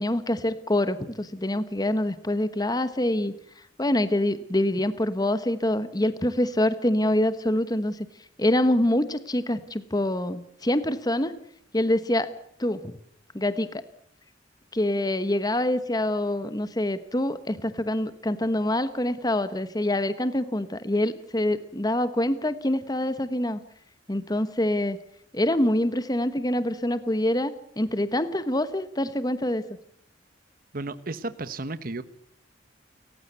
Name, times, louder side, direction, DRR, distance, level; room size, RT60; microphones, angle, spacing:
voice 1, 0.0-3.3 3.8-8.1 8.4-11.4 11.7-12.3 12.6-13.0 13.3-13.8 14.7-23.6 24.1-25.0 25.3-29.7, left 1 dB, 20° left, 12 dB, 1.1 m, -25 dB
voice 2, 30.7-32.0, right 2 dB, 50° right, 13 dB, 1.1 m, -33 dB
30.0 x 15.5 x 8.2 m, 0.67 s
head